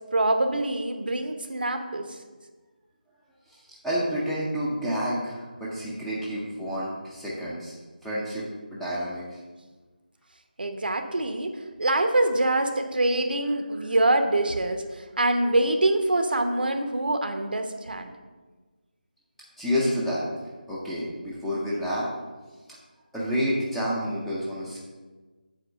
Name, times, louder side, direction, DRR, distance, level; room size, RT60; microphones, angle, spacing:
voice 1, 0.1-2.2 10.6-18.1, right 2 dB, 75° right, 6 dB, 0.8 m, -25 dB
voice 2, 3.5-9.4 19.6-20.3 20.7-22.1 23.1-24.9, equal, ahead, -8 dB, 0.6 m, -29 dB
7.9 x 3.0 x 6.2 m, 1.3 s
figure-of-eight pair, 170°, 5 cm